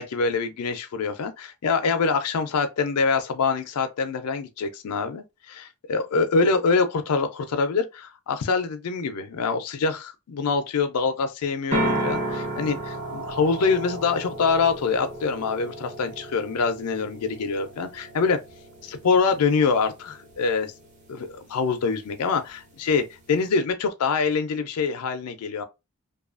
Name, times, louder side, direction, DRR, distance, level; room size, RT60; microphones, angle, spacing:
voice 1, 0.0-18.4 18.8-20.7 21.1-25.6, left 4 dB, 85° left, 0.4 m, -25 dB
sound 1, 11.7-23.5, right 1 dB, 35° right, 0.8 m, -34 dB
2.6 x 2.3 x 2.4 m
head